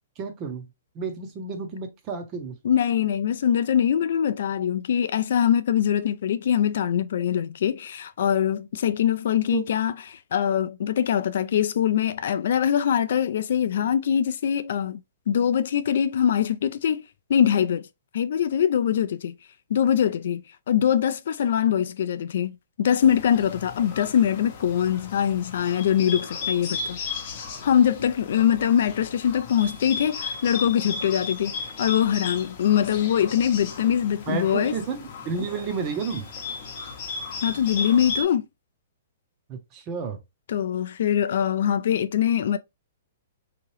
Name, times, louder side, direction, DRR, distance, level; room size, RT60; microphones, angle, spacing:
voice 1, 0.2-2.6 9.5-9.6 34.3-36.3 39.5-40.2, right 5 dB, 20° right, 0.6 m, -31 dB
voice 2, 2.6-15.0 15.3-17.9 18.1-19.3 19.7-20.4 20.7-27.0 27.6-31.5 31.8-34.7 37.4-38.5 40.5-42.6, left 9 dB, 50° left, 0.3 m, -23 dB
Bird, 23.0-38.2, left 5 dB, 30° left, 0.7 m, -35 dB
3.6 x 2.9 x 3.1 m
hypercardioid pair, 180°, 0 cm